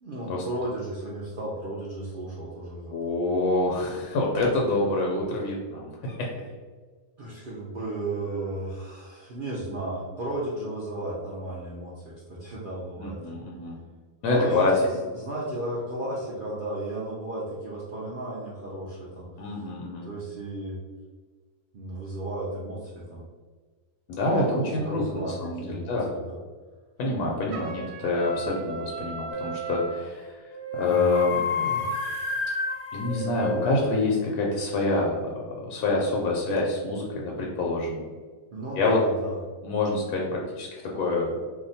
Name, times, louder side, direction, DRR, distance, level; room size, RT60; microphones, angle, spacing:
voice 1, 0.0-3.1 7.2-13.2 14.3-19.3 20.0-20.8 21.7-23.3 24.3-26.4 30.8-31.2 31.5-31.9 38.5-39.4, right 1 dB, 70° right, -6 dB, 0.5 m, -34 dB
voice 2, 2.9-6.3 13.0-13.8 14.2-14.7 19.4-20.1 24.1-26.1 27.0-30.4 30.7-31.4 32.9-38.0 38.8-39.0 39.6-41.4, left 2 dB, 80° left, -2 dB, 1.1 m, -26 dB
Trumpet, 27.5-30.1, right 3 dB, 85° right, 1.1 m, -37 dB
sound 1, 29.3-29.7 30.5-34.0, left 3 dB, 60° left, 0.7 m, -30 dB
2.8 x 2.2 x 3.9 m, 1.4 s
omnidirectional pair, 1.6 m